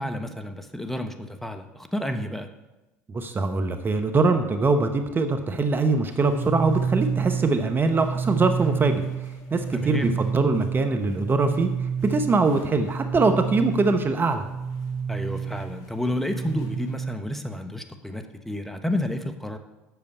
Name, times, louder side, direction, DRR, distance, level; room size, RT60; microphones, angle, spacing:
voice 1, 0.0-2.5 9.7-10.2 15.1-19.6, left 1 dB, 5° left, 6 dB, 1.2 m, -30 dB
voice 2, 3.1-9.0 9.5-11.7 12.0-14.4, right 3 dB, 30° right, 7 dB, 1.0 m, -23 dB
sound 1, 6.1-17.1, right 6 dB, 55° left, 1.9 m, -30 dB
8.0 x 6.7 x 8.3 m, 1.0 s
hypercardioid pair, 70°, 7 cm